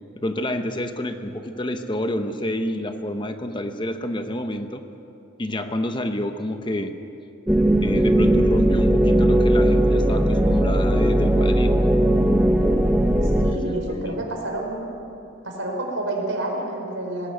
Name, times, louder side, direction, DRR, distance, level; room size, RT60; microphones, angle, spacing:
voice 1, 0.2-4.8 5.4-7.0 7.8-11.7 13.5-14.2, left 1 dB, 25° left, 7 dB, 0.8 m, -28 dB
sound 1, 7.5-13.5, right 1 dB, 5° right, 0.9 m, -18 dB
voice 2, 13.2-14.9 15.4-17.3, right 1 dB, 80° right, 0 dB, 4.5 m, -29 dB
19.5 x 16.5 x 8.0 m, 2.8 s
head